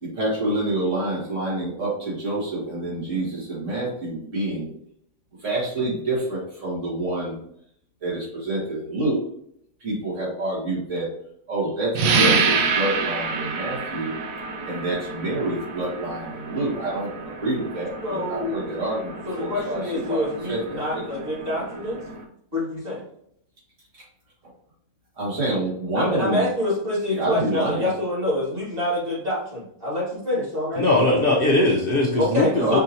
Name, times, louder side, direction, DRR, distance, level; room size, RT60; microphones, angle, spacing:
voice 1, 0.0-4.7 5.4-7.4 8.0-9.2 9.8-11.1 11.5-14.1 14.6-17.1 17.4-20.2 20.5-21.0 25.2-26.5 27.1-27.9 32.5-32.8, right 2 dB, 65° right, -6 dB, 2.1 m, -27 dB
sound 1, 11.9-22.2, right 4 dB, 85° right, 1.0 m, -28 dB
voice 2, 18.0-18.6 19.3-22.0 22.5-23.0 26.0-31.2 32.2-32.8, left 1 dB, 45° right, -6 dB, 2.1 m, -26 dB
voice 3, 30.8-32.8, left 2 dB, 50° left, -3 dB, 0.8 m, -20 dB
5.6 x 2.9 x 2.7 m, 0.70 s
omnidirectional pair, 1.4 m